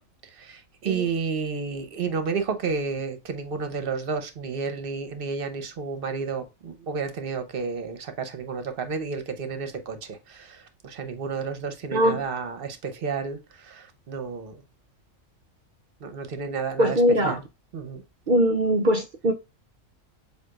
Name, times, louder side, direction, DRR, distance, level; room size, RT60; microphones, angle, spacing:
voice 1, 0.4-13.4 13.6-14.6 16.0-17.4 17.7-18.0, right 5 dB, 50° right, 0.8 m, -31 dB
voice 2, 11.9-12.2 16.8-17.4 18.3-19.3, equal, 65° right, 0.5 m, -21 dB
7.6 x 2.6 x 2.3 m
omnidirectional pair, 1.4 m